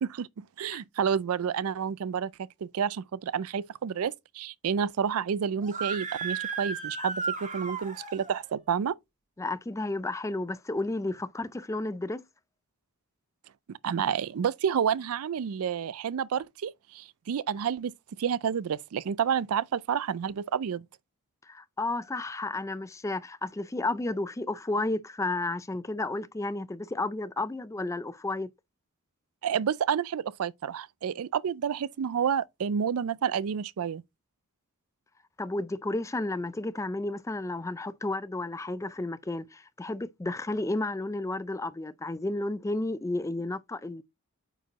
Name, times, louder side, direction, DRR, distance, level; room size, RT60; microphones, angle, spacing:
voice 1, 0.0-2.3 2.6-9.0 13.8-17.9 18.2-20.9 29.4-34.0, right 7 dB, 80° right, 0.4 m, -29 dB
Screaming, 5.6-8.4, right 5 dB, 35° right, 1.7 m, -34 dB
voice 2, 9.4-12.2 21.5-28.5 35.4-44.0, left 2 dB, 15° left, 0.4 m, -32 dB
8.9 x 4.7 x 3.0 m
head